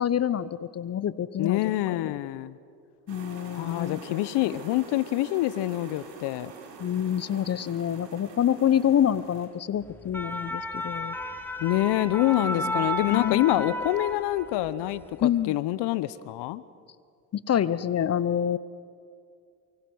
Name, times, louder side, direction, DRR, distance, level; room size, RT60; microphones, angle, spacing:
voice 1, 0.0-2.1 3.1-4.2 6.8-11.2 12.5-13.7 15.2-15.5 17.3-18.6, left 10 dB, 30° left, 17 dB, 0.9 m, -27 dB
voice 2, 1.4-2.6 3.5-6.5 11.6-16.6, left 15 dB, 55° left, 17 dB, 1.0 m, -26 dB
sound 1, 3.1-9.5, right 4 dB, 60° right, 4.6 m, -46 dB
sound 2, 9.9-14.7 15.0-15.3, left 1 dB, 5° left, 2.9 m, -32 dB
24.0 x 23.5 x 6.3 m, 2.3 s
hypercardioid pair, 70°, 48 cm